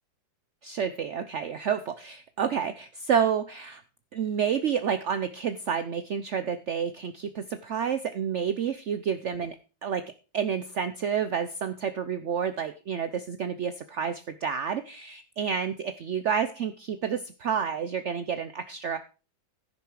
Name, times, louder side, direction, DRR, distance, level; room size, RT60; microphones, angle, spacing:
voice 1, 0.6-3.8 4.1-9.5 9.8-10.0 10.3-19.0, right 7 dB, 65° right, 11 dB, 0.7 m, -29 dB
15.0 x 6.8 x 4.7 m, 0.34 s
omnidirectional pair, 2.0 m